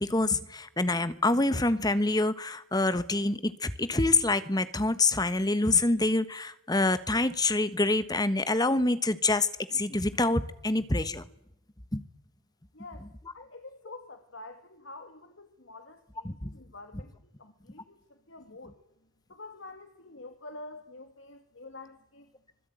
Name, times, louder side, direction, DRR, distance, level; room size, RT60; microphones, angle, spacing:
voice 1, 0.0-11.2 11.9-12.0 16.2-16.5, left 2 dB, 20° left, 1.3 m, -26 dB
voice 2, 12.7-18.8 19.3-22.3, left 2 dB, 60° left, 2.1 m, -47 dB
25.0 x 20.5 x 9.2 m
head